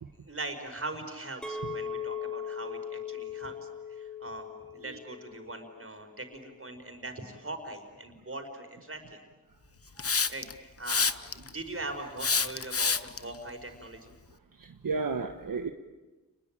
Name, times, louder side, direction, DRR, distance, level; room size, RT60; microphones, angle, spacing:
voice 1, 0.3-3.6 3.9-9.2 10.3-14.1, right 2 dB, 40° right, 5 dB, 5.2 m, -41 dB
Chink clink, 1.4-6.6, left 6 dB, ahead, 3.4 m, -39 dB
Hiss, 10.0-10.5 10.9-11.5 12.2-13.2, left 5 dB, 45° left, 1.0 m, -27 dB
voice 2, 14.6-15.7, right 4 dB, 75° right, 5 dB, 1.3 m, -34 dB
29.0 x 21.5 x 9.0 m, 1.2 s
wide cardioid pair, 60°, 34 cm